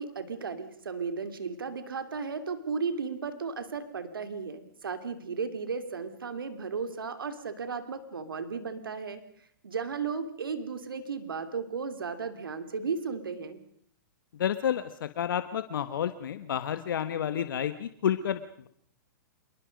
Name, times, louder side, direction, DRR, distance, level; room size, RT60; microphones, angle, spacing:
voice 1, 0.0-9.2 9.6-13.6, right 5 dB, 90° right, 9 dB, 2.8 m, -35 dB
voice 2, 14.4-18.7, left 9 dB, 75° left, 11 dB, 1.4 m, -30 dB
27.5 x 22.0 x 5.3 m, 0.66 s
hypercardioid pair, 125°, 11 cm